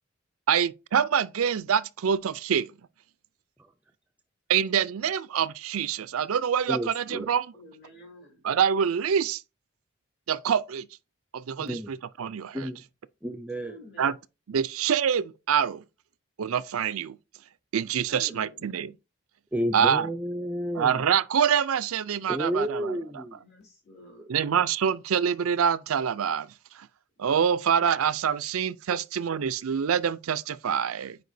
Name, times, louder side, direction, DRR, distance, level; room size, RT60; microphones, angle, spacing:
voice 1, 0.5-2.7 4.5-7.5 8.4-9.4 10.3-10.9 11.3-12.7 14.0-14.1 14.5-15.8 16.4-17.2 17.7-18.9 19.7-20.1 20.7-23.0 24.3-26.5 26.7-26.9 27.2-31.2, right 7 dB, 85° right, 0.4 m, -26 dB
voice 2, 6.7-7.3 11.6-11.9 12.5-12.8 13.2-13.8 19.5-21.0 22.3-23.4 24.2-24.3 28.9-29.0, right 1 dB, 5° right, 0.4 m, -31 dB
voice 3, 7.5-8.5 13.6-14.1 18.1-18.7 23.3-24.4 27.2-27.3, left 1 dB, 50° left, 3.2 m, -50 dB
9.3 x 4.7 x 2.6 m
head